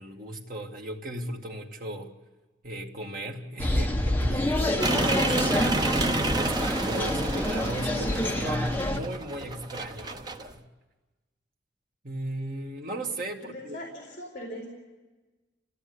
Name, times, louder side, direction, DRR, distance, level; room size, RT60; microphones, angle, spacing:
voice 1, 0.0-2.1 2.6-5.8 6.3-10.6 12.0-13.8, right 1 dB, 50° right, 2.4 m, -36 dB
sound 1, 3.6-9.0, left 1 dB, 10° left, 1.2 m, -27 dB
sound 2, 4.8-10.5, right 2 dB, 25° right, 0.8 m, -29 dB
voice 2, 7.7-8.5 13.4-14.7, equal, 45° left, 4.2 m, -41 dB
29.5 x 16.0 x 9.8 m
head